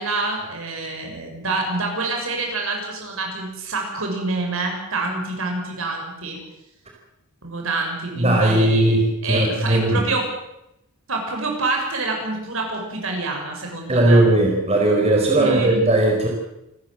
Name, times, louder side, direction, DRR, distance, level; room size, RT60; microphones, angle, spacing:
voice 1, 0.0-6.4 7.4-9.0 9.2-10.3 11.1-14.3 15.3-15.9, right 3 dB, 65° right, 2 dB, 6.9 m, -27 dB
voice 2, 8.2-10.0 13.9-16.3, right 1 dB, 30° right, 0 dB, 4.6 m, -18 dB
28.5 x 14.5 x 7.9 m, 0.87 s
head